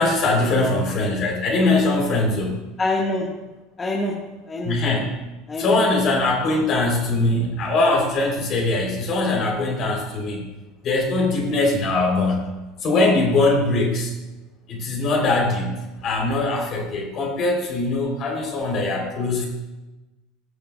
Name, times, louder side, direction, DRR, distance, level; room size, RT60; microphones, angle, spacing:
voice 1, 0.0-2.6 4.6-5.1 5.6-10.4 10.8-12.5 12.8-14.1 14.7-15.8 16.0-19.4, left 2 dB, 45° left, 0 dB, 3.7 m, -21 dB
voice 2, 2.8-3.4 3.8-4.8 5.5-5.8 11.5-11.7, left 2 dB, 25° left, -3 dB, 1.6 m, -26 dB
20.0 x 6.7 x 2.4 m, 1.1 s
hypercardioid pair, 75°, 0 cm